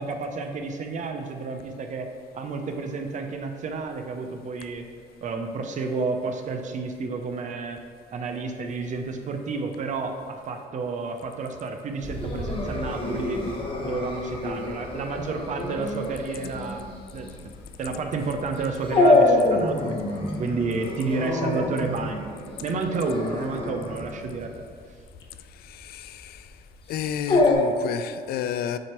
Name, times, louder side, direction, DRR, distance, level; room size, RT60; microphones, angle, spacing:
voice 1, 0.0-2.1 2.3-4.8 5.2-7.8 8.1-13.5 13.8-16.9 17.1-17.5 17.8-20.0 20.4-22.3 22.6-24.5, right 4 dB, 45° right, 5 dB, 0.6 m, -30 dB
Dog, 12.0-27.5, left 2 dB, 30° left, 0.9 m, -26 dB
voice 2, 25.6-26.5 26.9-28.8, left 9 dB, 65° left, 12 dB, 0.4 m, -31 dB
7.6 x 2.9 x 4.5 m, 2.2 s
cardioid pair, 110°, 17 cm